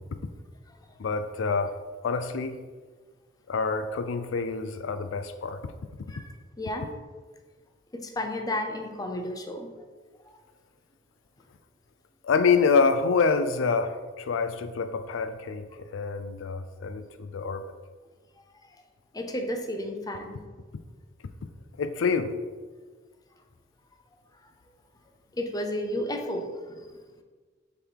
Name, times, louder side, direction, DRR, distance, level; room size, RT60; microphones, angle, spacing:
voice 1, 1.0-1.8 2.0-2.6 3.5-5.7 12.2-17.6 21.8-22.3, left 5 dB, 85° left, 10 dB, 0.4 m, -26 dB
voice 2, 6.6-6.9 7.9-9.7 19.1-20.4 25.3-26.9, left 1 dB, 20° left, 4 dB, 0.6 m, -32 dB
6.4 x 4.0 x 4.6 m, 1.4 s
head